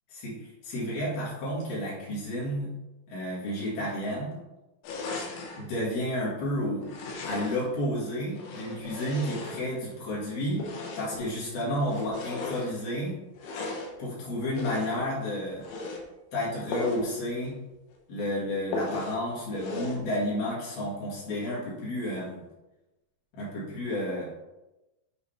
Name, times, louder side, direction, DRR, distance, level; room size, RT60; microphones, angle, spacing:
voice 1, 0.1-2.8 3.1-4.4 5.6-6.9 7.3-10.7 11.0-13.2 14.0-15.6 16.3-17.6 18.1-22.4 23.3-24.3, left 1 dB, 65° left, -6 dB, 3.5 m, -31 dB
sound 1, 4.8-5.7 6.8-7.7 8.3-10.0 10.5-11.3 11.8-12.7 13.3-14.0 14.5-15.1 15.5-16.0 16.7-17.1 17.4-17.5 17.9-18.0 18.7-19.2 19.5-20.0, left 2 dB, 80° left, 3.1 m, -36 dB
8.3 x 4.7 x 3.4 m, 1.0 s
omnidirectional pair, 4.8 m